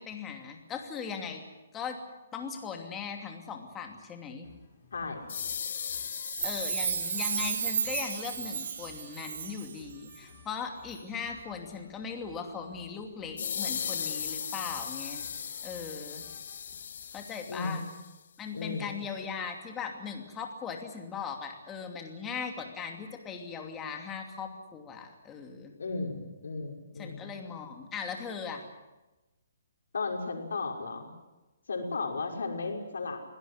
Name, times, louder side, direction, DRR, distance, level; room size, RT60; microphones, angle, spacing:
voice 1, 0.0-1.4 1.7-2.0 2.3-4.5 6.4-15.3 15.6-16.2 17.1-17.8 18.4-25.8 27.0-28.6, left 6 dB, 10° left, 3 dB, 2.7 m, -39 dB
sound 1, 4.4-17.2, left 4 dB, 35° left, 8.0 m, -58 dB
voice 2, 4.9-5.2 17.5-17.8 18.5-19.0 25.8-27.3 29.9-31.1 31.7-33.2, left 3 dB, 85° left, 3 dB, 5.8 m, -35 dB
sound 2, 5.3-9.1 13.4-18.1, left 7 dB, 55° left, 0.8 m, -38 dB
Chime, 6.2-9.8 10.1-10.2, right 7 dB, 55° right, 1.9 m, -33 dB
24.0 x 17.5 x 9.8 m, 1.1 s
hypercardioid pair, 170°, 0 cm